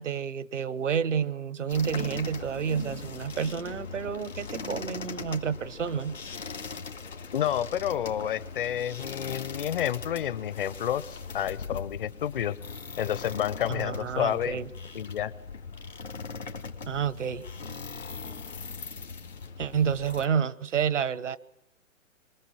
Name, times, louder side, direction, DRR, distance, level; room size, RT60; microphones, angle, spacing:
voice 1, 0.0-6.2 13.7-14.7 16.9-17.4 19.6-21.4, right 7 dB, 65° right, 1.1 m, -29 dB
sound 1, 1.7-20.3, left 5 dB, 75° left, 2.3 m, -40 dB
voice 2, 7.3-12.6 13.0-14.6 14.9-15.3, left 10 dB, 45° left, 0.8 m, -30 dB
28.0 x 24.0 x 6.3 m
figure-of-eight pair, 125°, 39 cm